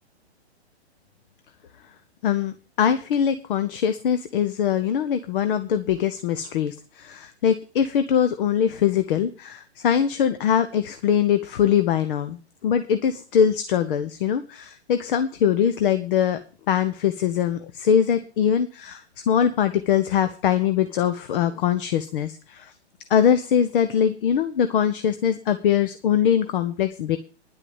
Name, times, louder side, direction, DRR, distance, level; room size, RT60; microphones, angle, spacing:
voice 1, 2.2-16.4 16.7-22.7 23.1-27.2, left 8 dB, 50° left, 10 dB, 1.2 m, -22 dB
11.0 x 8.2 x 7.2 m, 0.36 s
hypercardioid pair, 130°, 33 cm